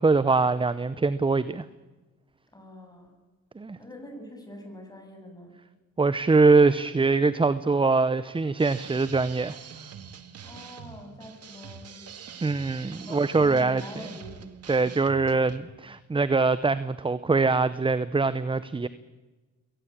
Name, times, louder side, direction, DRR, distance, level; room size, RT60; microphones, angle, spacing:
voice 1, 0.0-1.6 3.6-3.8 6.0-9.6 12.4-13.8 14.7-18.9, right 3 dB, 15° right, 15 dB, 0.8 m, -23 dB
voice 2, 2.5-3.1 3.8-5.5 10.4-12.1 13.1-14.5, left 1 dB, 15° left, 3 dB, 7.5 m, -44 dB
sound 1, 8.6-15.6, right 7 dB, 55° right, 2.0 m, -44 dB
22.5 x 18.5 x 8.8 m, 1.2 s
cardioid pair, 90°, 30 cm